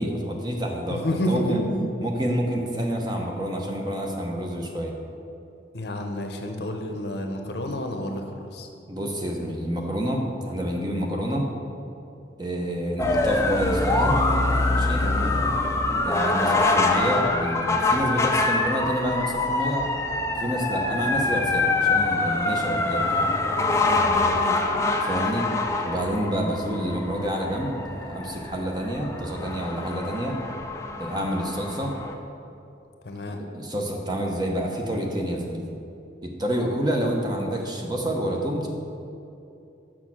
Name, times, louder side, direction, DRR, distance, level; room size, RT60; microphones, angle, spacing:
voice 1, 0.0-1.6 2.0-4.9 8.9-11.5 12.4-14.2 14.7-15.0 16.0-19.8 20.4-23.2 25.0-25.5 25.8-30.4 31.0-31.9 33.4-35.6 36.2-38.7, equal, 20° right, 0 dB, 0.8 m, -28 dB
voice 2, 0.9-1.9 5.7-8.7 15.0-15.4 24.0-24.6 33.0-33.4, equal, 55° left, 4 dB, 0.7 m, -30 dB
sound 1, 13.0-32.1, left 2 dB, 15° left, 0.4 m, -25 dB
6.4 x 6.1 x 6.0 m, 2.7 s
head